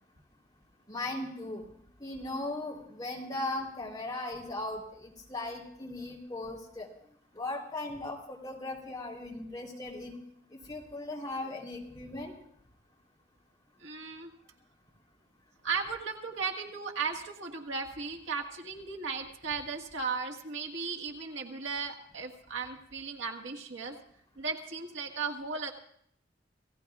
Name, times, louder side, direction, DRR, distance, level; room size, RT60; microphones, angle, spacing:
voice 1, 0.9-1.6 2.0-6.9 7.3-10.2 10.5-12.3, left 2 dB, 20° left, -3 dB, 3.2 m, -38 dB
voice 2, 13.8-14.3 15.6-24.0 24.3-25.7, right 5 dB, 90° right, 1 dB, 1.7 m, -36 dB
27.5 x 16.5 x 2.4 m, 0.68 s
head